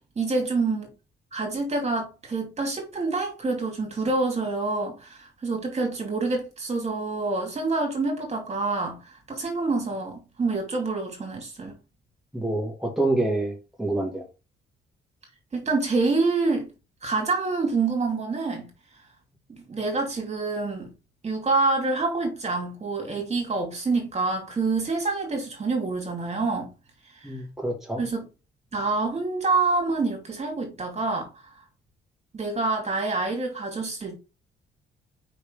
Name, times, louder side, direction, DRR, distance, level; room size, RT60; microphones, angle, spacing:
voice 1, 0.2-0.9 1.3-11.7 15.5-16.7 17.0-18.7 19.5-20.9 21.2-26.7 27.2-27.3 28.0-28.3 28.7-31.3 32.3-34.1, right 3 dB, 35° right, 2.7 m, -27 dB
voice 2, 12.3-14.3 27.2-28.0, right 2 dB, ahead, 2.2 m, -27 dB
5.1 x 4.3 x 5.2 m
cardioid pair, 90°, 20 cm